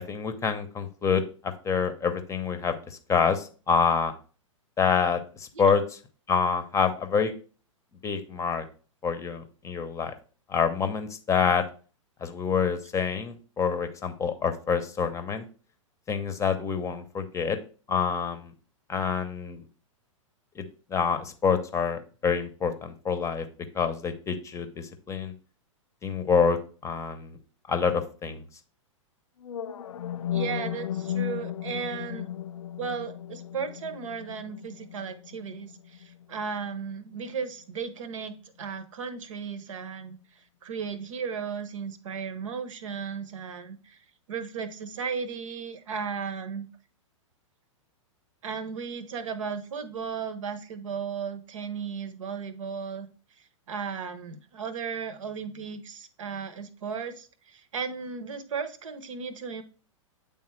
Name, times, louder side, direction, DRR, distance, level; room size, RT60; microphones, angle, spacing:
voice 1, 0.0-4.1 4.8-5.8 6.3-7.3 8.0-8.7 9.0-10.1 10.5-11.6 12.2-15.4 16.1-17.6 17.9-18.5 18.9-19.6 20.6-20.7 20.9-23.5 23.7-25.3 26.0-27.4 27.7-28.4, left 6 dB, 15° left, 9 dB, 0.7 m, -27 dB
sound 1, 29.4-37.4, left 10 dB, 80° left, 0.4 m, -36 dB
voice 2, 30.3-32.3 32.8-44.0 44.3-46.7 48.4-53.1 53.4-59.6, right 6 dB, 70° right, 11 dB, 0.9 m, -35 dB
8.6 x 3.5 x 3.2 m, 0.38 s
hypercardioid pair, 115°, 17 cm